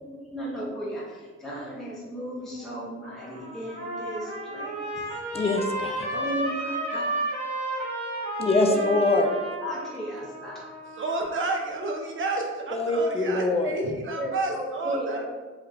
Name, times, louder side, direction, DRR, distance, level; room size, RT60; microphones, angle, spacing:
voice 1, 0.3-4.8 6.1-7.0 8.7-8.9 9.6-10.7 14.2-15.1, right 1 dB, ahead, -5 dB, 0.8 m, -34 dB
Trumpet, 3.0-11.5, right 2 dB, 20° right, 1.5 m, -33 dB
voice 2, 5.3-6.1 8.4-9.3 12.7-13.8, left 2 dB, 20° left, 4 dB, 0.4 m, -24 dB
voice 3, 11.0-15.2, right 2 dB, 40° right, 1 dB, 0.7 m, -30 dB
3.2 x 2.4 x 3.4 m, 1.4 s
cardioid pair, 90°, 30 cm